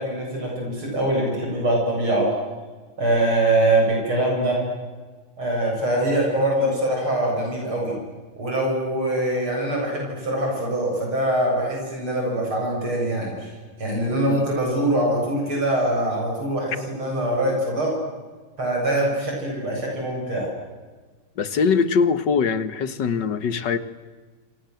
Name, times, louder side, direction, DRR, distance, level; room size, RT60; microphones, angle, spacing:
voice 1, 0.0-2.3 3.0-4.6 5.4-8.0 8.4-13.5 13.8-17.9 18.6-20.5, right 1 dB, 70° right, -1 dB, 8.8 m, -23 dB
voice 2, 21.4-23.8, left 5 dB, 55° left, 13 dB, 2.0 m, -22 dB
28.0 x 26.5 x 7.9 m, 1.4 s
omnidirectional pair, 2.4 m